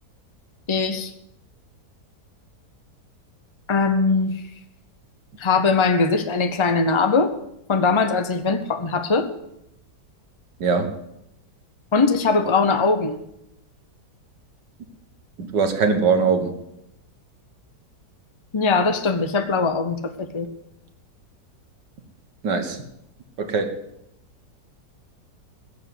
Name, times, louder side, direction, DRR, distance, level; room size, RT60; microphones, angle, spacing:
voice 1, 0.7-1.1 3.7-4.4 5.4-7.3 7.7-9.3 11.9-13.2 18.5-20.5, left 4 dB, 45° left, 8 dB, 0.3 m, -21 dB
voice 2, 10.6-11.0 15.4-16.5 22.4-22.8 23.4-23.8, right 5 dB, 80° right, 7 dB, 2.1 m, -21 dB
16.0 x 7.3 x 8.1 m, 0.80 s
omnidirectional pair, 1.8 m